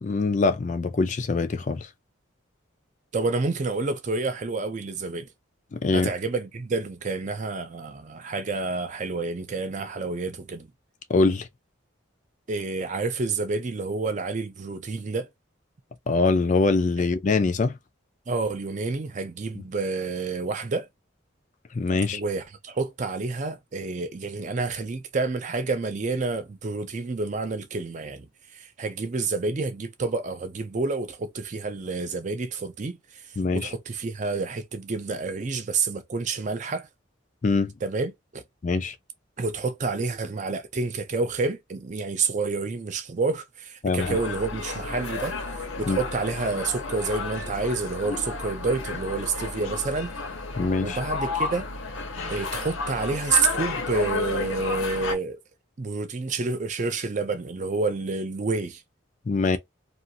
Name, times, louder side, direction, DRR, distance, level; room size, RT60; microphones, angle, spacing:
voice 1, 0.0-1.9 5.7-6.1 11.1-11.5 16.1-17.7 21.7-22.2 33.4-33.7 37.4-37.7 38.6-38.9 43.8-44.2 45.9-46.0 50.6-51.0 59.3-59.6, left 3 dB, 35° left, 0.3 m, -23 dB
voice 2, 3.1-5.3 5.9-10.7 12.5-15.3 17.0-17.1 18.3-20.9 22.1-36.9 37.8-38.4 39.4-45.4 45.8-50.2 50.8-51.7 52.3-55.4 55.8-58.8, right 3 dB, 35° right, 0.4 m, -29 dB
sound 1, 44.0-55.1, left 3 dB, 80° left, 0.8 m, -32 dB
2.4 x 2.4 x 2.7 m
head